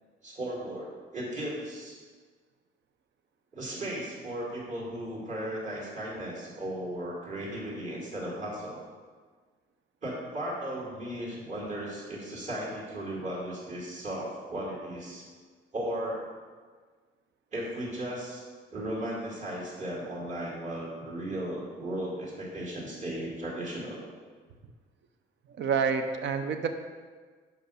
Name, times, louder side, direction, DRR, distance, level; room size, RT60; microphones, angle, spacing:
voice 1, 0.2-2.0 3.5-8.8 10.0-15.2 15.7-16.2 17.5-18.4 18.7-24.0, right 1 dB, 40° right, -5 dB, 2.3 m, -36 dB
voice 2, 25.6-26.7, right 6 dB, 65° right, 7 dB, 0.7 m, -28 dB
5.3 x 5.1 x 6.3 m, 1.5 s
cardioid pair, 90°, 20 cm